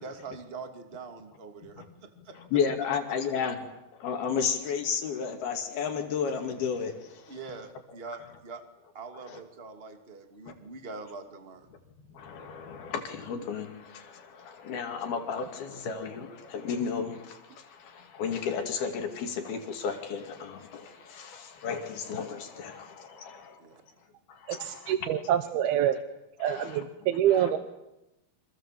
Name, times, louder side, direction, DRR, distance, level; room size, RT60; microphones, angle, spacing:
voice 1, 0.0-2.4 7.3-8.6 8.9-11.7 23.6-23.8, right 4 dB, 20° right, 6 dB, 2.1 m, -43 dB
voice 2, 2.4-3.6 4.0-7.4 9.3-9.4 10.5-10.6 12.1-23.6 24.3-24.9 26.4-26.8 27.3-27.5, left 6 dB, 75° left, 4 dB, 4.4 m, -33 dB
voice 3, 24.5-26.0 26.4-27.6, right 10 dB, 80° right, 9 dB, 3.0 m, -26 dB
29.5 x 26.0 x 7.6 m, 0.93 s
omnidirectional pair, 4.4 m